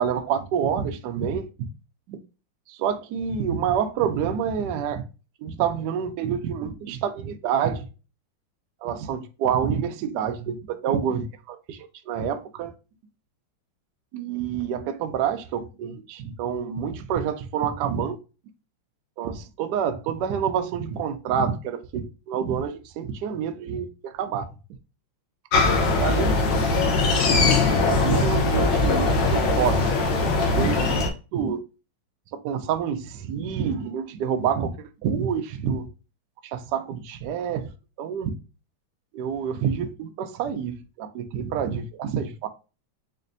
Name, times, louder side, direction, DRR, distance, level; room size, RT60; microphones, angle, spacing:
voice 1, 0.0-1.7 2.1-2.2 2.7-5.0 5.4-7.9 8.8-12.7 14.1-18.2 19.2-24.5 26.0-26.4 27.0-27.3 27.9-31.0 31.3-31.6 32.3-35.9 36.4-37.7 38.0-38.3 39.1-42.5, right 7 dB, 70° right, 1.0 m, -28 dB
sound 1, 25.5-31.1, left 3 dB, 65° left, 1.4 m, -21 dB
5.2 x 2.5 x 2.6 m
omnidirectional pair, 2.2 m